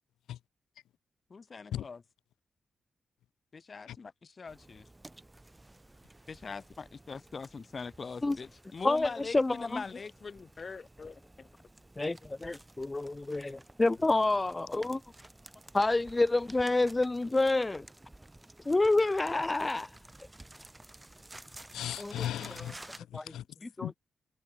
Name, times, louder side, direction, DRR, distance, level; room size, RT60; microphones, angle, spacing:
voice 1, 1.3-2.0 3.5-4.9 6.3-11.5, left 4 dB, 50° left, 5.3 m, -42 dB
sound 1, 4.5-23.0, right 2 dB, 20° right, 3.3 m, -53 dB
voice 2, 8.8-9.8 12.0-15.0 15.7-17.9 18.6-20.0 22.0-22.1 23.1-23.3 23.8-23.9, left 2 dB, 25° left, 1.0 m, -28 dB
voice 3, 21.7-24.0, left 12 dB, 80° left, 2.4 m, -38 dB
hypercardioid pair, 40°, 0 cm